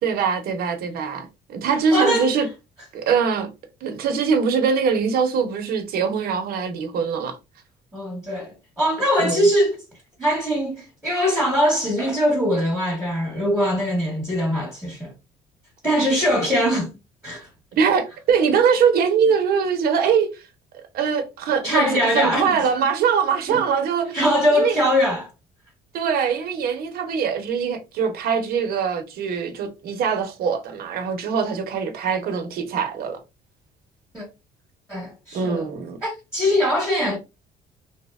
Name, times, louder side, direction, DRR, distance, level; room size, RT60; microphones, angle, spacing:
voice 1, 0.0-2.5 2.9-3.5 3.8-7.4 9.2-9.4 17.8-20.4 20.9-21.9 22.1-24.2 24.5-24.8 25.9-33.2 35.3-36.0, right 6 dB, 65° right, 0.6 m, -22 dB
voice 2, 1.9-2.3 7.9-9.8 10.2-15.1 15.8-16.9 17.2-17.5 21.6-22.5 23.5-23.7 24.0-25.3 34.1-34.3 34.9-35.6 36.0-37.2, equal, 5° right, 1.1 m, -22 dB
2.8 x 2.0 x 2.2 m
cardioid pair, 110°, 17 cm